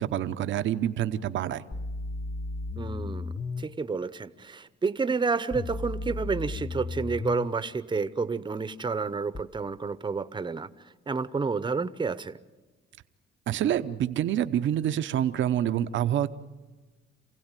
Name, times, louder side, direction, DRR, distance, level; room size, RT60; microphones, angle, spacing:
voice 1, 0.0-1.6 13.5-16.3, right 11 dB, 70° right, 10 dB, 0.9 m, -27 dB
sound 1, 1.7-3.7 5.5-7.5 9.4-9.5, left 3 dB, 25° left, 0.7 m, -34 dB
voice 2, 2.8-10.7 11.1-12.4, right 4 dB, 25° right, 13 dB, 0.9 m, -30 dB
27.5 x 16.5 x 9.1 m, 1.3 s
cardioid pair, 90°, 20 cm